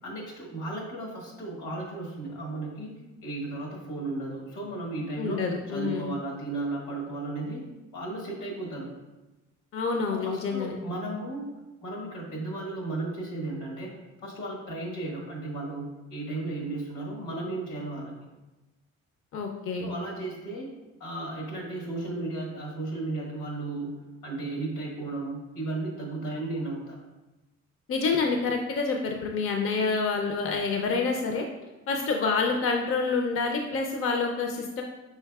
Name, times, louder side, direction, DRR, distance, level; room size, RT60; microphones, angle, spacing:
voice 1, 0.0-2.9 3.2-7.7 7.9-8.9 10.1-11.5 11.8-18.2 19.8-20.7 21.0-23.9 24.2-27.0, right 2 dB, 85° left, -2 dB, 1.5 m, -35 dB
voice 2, 5.2-6.1 9.7-10.7 19.3-19.9 27.9-31.4 31.9-34.8, left 4 dB, 45° left, 2 dB, 0.5 m, -27 dB
5.6 x 3.9 x 2.3 m, 1.1 s
cardioid pair, 90°, 30 cm